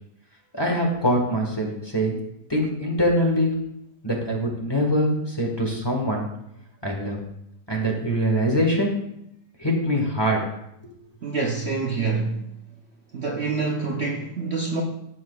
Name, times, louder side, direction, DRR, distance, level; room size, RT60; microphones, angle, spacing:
voice 1, 0.5-2.2 2.5-3.5 4.0-6.3 6.8-7.2 7.7-8.9 9.6-10.4 10.8-10.9, equal, 15° left, -1 dB, 1.4 m, -23 dB
voice 2, 11.2-12.5 13.1-14.8, right 4 dB, 50° right, 0 dB, 0.9 m, -26 dB
15.5 x 6.1 x 2.3 m, 0.80 s
omnidirectional pair, 1.7 m